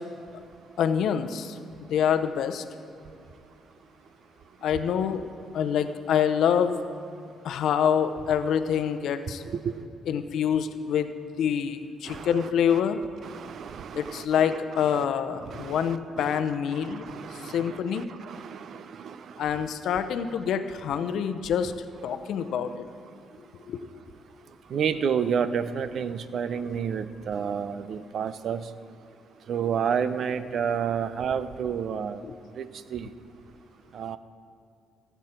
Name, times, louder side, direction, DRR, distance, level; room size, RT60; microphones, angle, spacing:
voice 1, 0.8-1.6 1.9-2.6 4.6-5.3 5.5-6.7 7.4-9.4 10.1-13.0 13.9-17.1 17.3-18.1 19.4-21.7 22.0-22.7 23.7-23.8 32.2-32.3, left 8 dB, 75° left, 9 dB, 0.7 m, -26 dB
voice 2, 12.1-12.8 13.2-15.0 15.4-16.4 16.7-19.7 24.7-28.7 29.5-32.2 32.6-33.1 33.9-34.2, right 7 dB, 60° right, 13 dB, 0.5 m, -31 dB
16.0 x 8.2 x 4.4 m, 2.6 s
cardioid pair, 90°, 0 cm